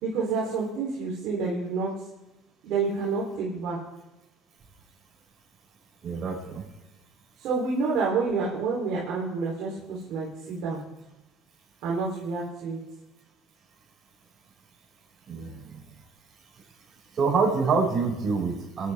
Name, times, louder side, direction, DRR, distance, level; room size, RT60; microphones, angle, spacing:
voice 1, 0.0-1.9 2.6-3.8 7.4-10.8 11.8-12.8, right 4 dB, 70° right, -5 dB, 3.3 m, -28 dB
voice 2, 6.0-6.6 15.3-15.6 17.2-18.9, right 4 dB, 45° right, -1 dB, 5.6 m, -26 dB
22.0 x 11.0 x 3.5 m, 0.99 s
supercardioid pair, 95°, 0 cm